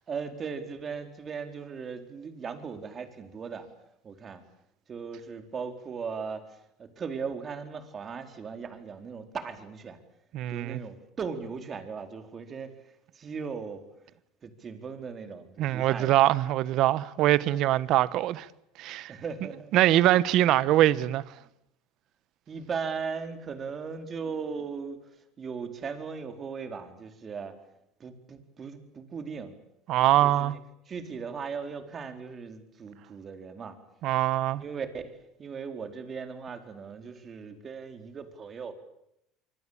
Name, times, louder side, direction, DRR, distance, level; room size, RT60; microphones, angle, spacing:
voice 1, 0.1-3.7 4.0-4.4 4.9-10.0 10.5-12.7 13.1-13.8 14.4-16.2 19.1-19.7 22.5-25.0 25.4-27.5 28.0-29.6 30.2-30.6 30.9-33.8 34.6-38.7, right 5 dB, 30° right, 4.4 m, -38 dB
voice 2, 10.3-10.8 15.6-18.5 18.8-19.1 19.7-21.2 29.9-30.5 34.0-34.6, right 14 dB, 55° right, 1.3 m, -23 dB
26.0 x 24.5 x 8.9 m
supercardioid pair, 120°, 0 cm